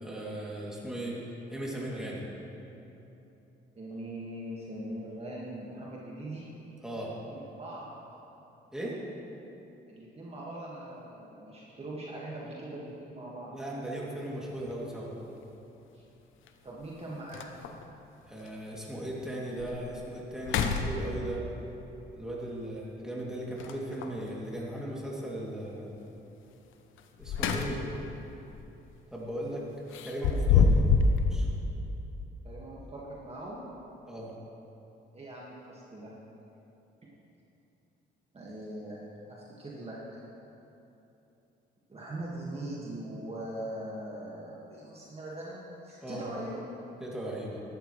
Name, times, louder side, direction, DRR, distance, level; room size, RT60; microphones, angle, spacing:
voice 1, 0.0-1.2 1.5-2.3 6.8-7.1 8.7-9.0 13.5-15.1 18.3-21.5 22.1-25.9 27.2-27.8 29.1-30.7 31.3-31.6 34.1-34.3 46.0-46.3 47.0-47.6, right 1 dB, 5° right, -5 dB, 2.7 m, -37 dB
voice 2, 3.7-6.5 7.3-7.9 9.9-13.6 15.9-16.0 16.6-17.7 32.4-33.6 35.1-36.1 38.3-39.0 39.3-40.0 41.9-46.6, right 1 dB, 30° right, -5 dB, 1.9 m, -41 dB
sound 1, 14.6-14.7 16.5-16.6 17.0-17.1 17.3-17.9 18.5-18.6 19.1-19.2 19.6-20.0 20.4-21.5 23.6-24.2 27.0-28.0 28.4-28.6 29.9-31.2, left 4 dB, 80° left, 0.8 m, -26 dB
14.0 x 12.0 x 3.3 m, 2.9 s
cardioid pair, 90°, 20 cm